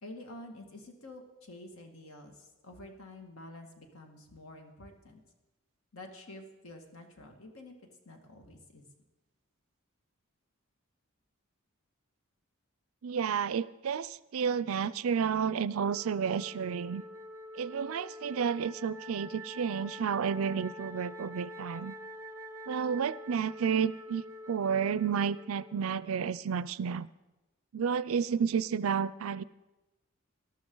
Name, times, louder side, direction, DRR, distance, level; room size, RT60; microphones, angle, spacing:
voice 1, 0.0-5.2 5.9-7.8 8.1-8.8, left 1 dB, 70° left, 3 dB, 2.0 m, -49 dB
voice 2, 13.0-17.0 17.6-21.9 22.7-27.1 27.7-29.4, right 7 dB, 70° right, 18 dB, 0.4 m, -31 dB
Wind instrument woodwind instrument, 15.7-26.1, equal, 15° right, 0.6 m, -46 dB
19.0 x 13.0 x 3.9 m, 1.1 s
head